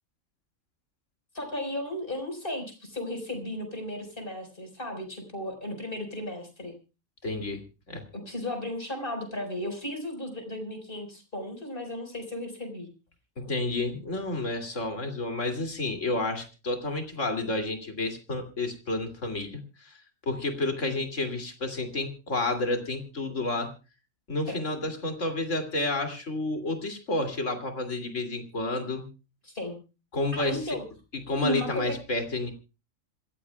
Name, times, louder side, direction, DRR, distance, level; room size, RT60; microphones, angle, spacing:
voice 1, 1.3-6.7 8.1-12.9 24.5-24.7 29.4-29.8 30.3-30.8 31.4-32.0, left 1 dB, 40° left, 5 dB, 5.0 m, -35 dB
voice 2, 7.2-7.6 7.9-8.0 13.4-20.0 20.3-23.7 24.3-29.1 30.1-30.7 31.1-32.5, left 2 dB, 65° left, 6 dB, 3.0 m, -30 dB
26.5 x 15.0 x 2.3 m, 0.30 s
omnidirectional pair, 1.4 m